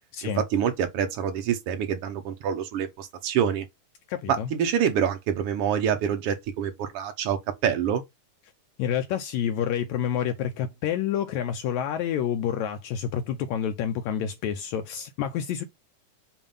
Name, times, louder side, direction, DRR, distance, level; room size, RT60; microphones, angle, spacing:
voice 1, 0.2-3.6 4.3-8.0, right 8 dB, 70° right, 1.4 m, -26 dB
voice 2, 4.1-4.5 8.8-15.6, left 9 dB, 80° left, 1.8 m, -28 dB
7.1 x 2.6 x 5.4 m
omnidirectional pair, 3.6 m